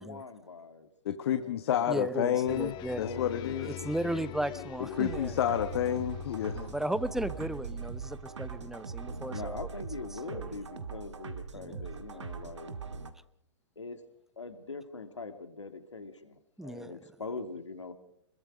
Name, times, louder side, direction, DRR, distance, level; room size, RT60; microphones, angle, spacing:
voice 1, 0.0-0.9 1.3-2.4 3.0-5.3 9.3-12.8 13.8-14.0 14.4-17.9, left 4 dB, 90° left, 8 dB, 2.7 m, -43 dB
voice 2, 1.0-3.8 5.0-6.7, left 10 dB, 60° left, 10 dB, 1.3 m, -30 dB
voice 3, 1.9-3.0 3.6-5.4 6.5-9.7 10.1-10.5 11.5-11.9 16.6-17.0, right 1 dB, 5° right, 16 dB, 0.9 m, -36 dB
sound 1, 2.5-8.7, left 17 dB, 30° left, 1.0 m, -45 dB
sound 2, 4.9-13.1, right 5 dB, 85° right, 1.9 m, -41 dB
26.5 x 22.0 x 5.1 m, 0.71 s
hypercardioid pair, 115°, 15 cm